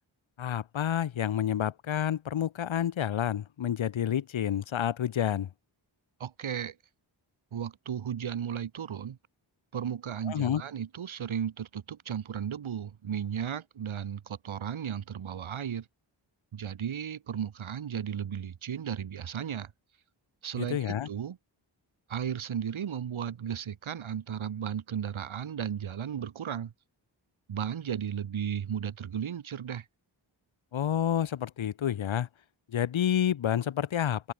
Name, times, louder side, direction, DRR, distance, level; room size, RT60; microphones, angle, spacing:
voice 1, 0.4-5.5 10.3-10.6 20.5-21.1 30.7-32.3 32.7-34.3, left 10 dB, 75° left, 1.0 m, -29 dB
voice 2, 6.2-6.7 7.5-9.2 9.7-15.8 16.5-19.7 20.4-21.4 22.1-26.7 27.5-29.8, right 8 dB, 80° right, 1.4 m, -35 dB
cardioid pair, 60°, 47 cm